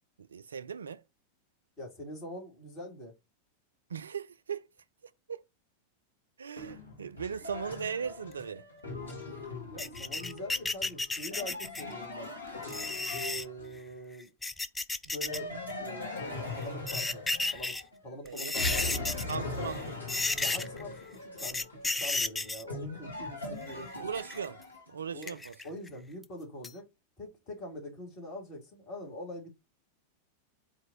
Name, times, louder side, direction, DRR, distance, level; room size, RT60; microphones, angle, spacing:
voice 1, 0.2-1.0 3.9-4.6 5.3-5.4 6.4-8.6 9.3-9.4 18.2-18.5 19.3-19.8 24.0-24.6 24.9-25.6, right 7 dB, 70° right, 0.3 m, -38 dB
voice 2, 1.8-3.1 9.6-12.3 13.1-14.3 15.0-15.5 15.8-17.2 17.5-19.7 20.4-24.0 25.1-25.4 25.6-26.9 27.2-29.5, left 1 dB, 35° left, 1.9 m, -44 dB
sound 1, 6.6-14.0 15.3-18.1 18.5-25.0, left 2 dB, 85° left, 1.1 m, -40 dB
sound 2, 9.8-11.9 12.6-13.4 14.2-15.4 15.7-15.8 16.6-17.8 18.3-19.4 19.7-19.8 20.1-20.8 21.4-22.6 23.7-24.5 25.2-25.9 26.2-26.3 26.6-26.7, left 3 dB, 10° left, 0.3 m, -33 dB
4.3 x 2.6 x 3.5 m
figure-of-eight pair, 90°, 0 cm